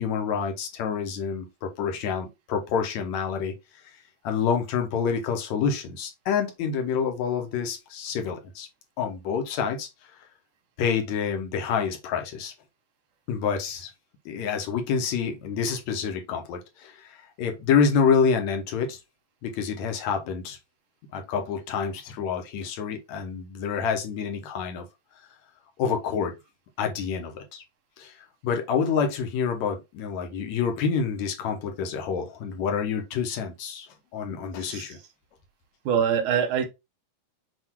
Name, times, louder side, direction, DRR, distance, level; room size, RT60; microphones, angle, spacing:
voice 1, 0.0-3.5 4.2-8.7 9.0-9.9 10.8-12.5 13.3-13.9 14.3-19.0 19.4-20.6 21.1-24.8 25.8-26.3 26.8-27.6 28.0-28.1 28.4-35.0, left 6 dB, 65° left, 2.0 m, -27 dB
voice 2, 35.9-36.7, right 8 dB, 65° right, 2.4 m, -24 dB
7.8 x 2.7 x 4.5 m
omnidirectional pair, 4.1 m